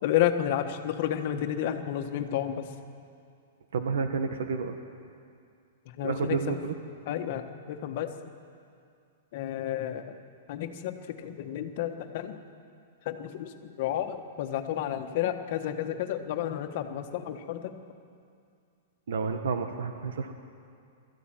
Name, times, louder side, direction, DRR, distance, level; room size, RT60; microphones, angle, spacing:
voice 1, 0.0-2.7 6.0-6.6 7.1-8.1 9.3-10.1 10.5-12.4 13.0-17.8, left 11 dB, 40° left, 6 dB, 1.4 m, -31 dB
voice 2, 3.7-4.8 6.0-6.7 19.1-20.3, right 5 dB, 85° right, 6 dB, 1.6 m, -30 dB
21.5 x 14.0 x 9.1 m, 2.4 s
supercardioid pair, 170°, 0 cm